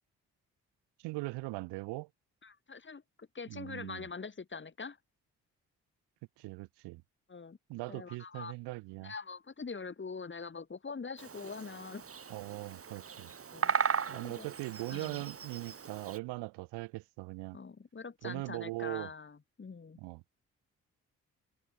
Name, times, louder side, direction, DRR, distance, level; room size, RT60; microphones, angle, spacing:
voice 1, 1.0-2.1 3.5-4.1 6.4-7.0 7.7-9.1 12.3-13.3 14.1-17.6 18.2-19.1 20.0-20.2, right 22 dB, 75° right, 1.0 m, -40 dB
voice 2, 2.4-5.0 7.3-7.6 7.9-8.5 9.0-12.0 13.5-13.7 14.1-14.5 14.9-15.2 17.5-20.0, left 5 dB, 30° left, 1.4 m, -44 dB
Bird vocalization bird call bird song, 11.2-16.2, right 6 dB, 35° right, 1.2 m, -37 dB
hypercardioid pair, 40°, 41 cm